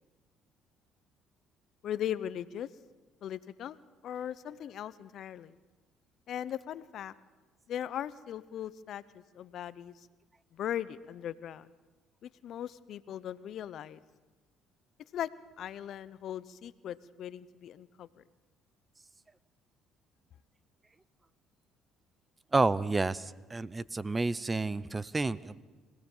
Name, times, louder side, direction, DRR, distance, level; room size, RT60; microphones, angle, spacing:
voice 1, 1.8-2.7 3.2-5.6 6.3-7.1 7.7-10.1 10.5-11.7 12.2-14.0 15.1-15.3 15.6-18.2, left 10 dB, 60° left, 17 dB, 0.7 m, -39 dB
voice 2, 22.5-25.6, right 3 dB, 20° right, 19 dB, 0.7 m, -30 dB
25.0 x 17.0 x 7.3 m, 1.3 s
supercardioid pair, 80°, 0 cm